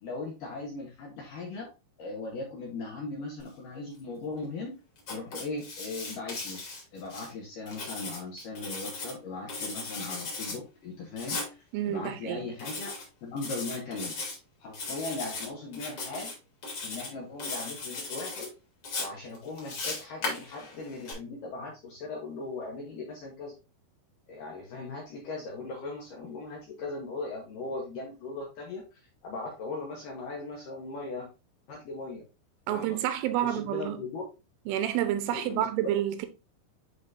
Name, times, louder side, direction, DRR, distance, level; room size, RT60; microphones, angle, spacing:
voice 1, 0.0-1.7 2.0-4.7 5.1-6.6 6.9-11.4 11.8-12.9 13.2-14.2 14.6-16.3 16.8-18.5 19.0-23.5 24.3-28.8 29.2-31.3 31.7-32.2 32.7-33.0 33.4-34.2 35.3-35.7, left 3 dB, 70° left, 2.1 m, -38 dB
Writing, 5.0-7.3 7.7-9.1 9.5-10.6 11.2-11.5 12.6-13.1 13.4-14.3 14.7-15.5 15.7-16.3 16.6-17.1 17.4-18.5 18.8-21.1, left 3 dB, 35° left, 3.0 m, -37 dB
voice 2, 11.7-12.4 32.7-34.0 34.7-36.3, right 11 dB, 85° right, 3.2 m, -29 dB
9.8 x 4.0 x 2.6 m
omnidirectional pair, 5.4 m